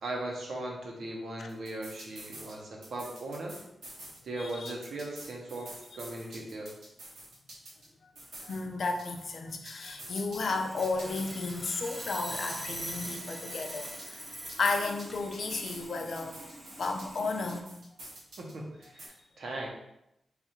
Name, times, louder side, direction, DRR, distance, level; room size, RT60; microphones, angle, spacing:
voice 1, 0.0-3.6 4.2-6.7 18.4-19.7, right 1 dB, 75° right, -1 dB, 0.9 m, -38 dB
sound 1, 1.5-2.5 2.8-4.2 4.5-7.9 8.2-10.5 10.8-13.2 13.5-15.9 16.2-18.5 18.8-19.1, right 1 dB, 90° right, 1.2 m, -48 dB
voice 2, 4.4-4.7 8.4-14.2 14.6-16.4 16.8-17.7, left 3 dB, 65° left, 4 dB, 0.5 m, -33 dB
Sawing, 10.4-17.6, right 1 dB, 10° right, 0.6 m, -43 dB
3.3 x 2.4 x 4.3 m, 0.84 s
cardioid pair, 65°, 0 cm